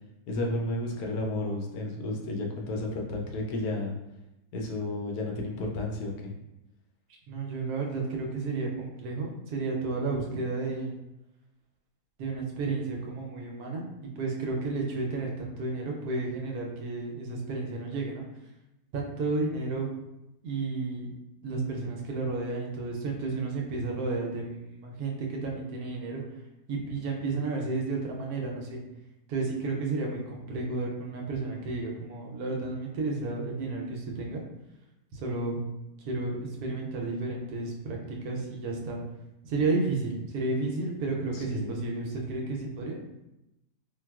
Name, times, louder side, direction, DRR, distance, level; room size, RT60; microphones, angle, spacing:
voice 1, 0.3-4.0 4.5-6.4 10.1-10.2 41.3-41.7, left 2 dB, 75° left, 0 dB, 1.0 m, -32 dB
voice 2, 7.3-11.0 12.2-18.2 18.9-19.9 20.4-21.1 21.4-26.2 26.7-28.8 29.3-34.4 35.1-35.6 36.0-39.0 39.4-43.0, right 3 dB, 75° right, 0 dB, 1.1 m, -32 dB
4.0 x 2.3 x 2.3 m, 0.92 s
omnidirectional pair, 1.7 m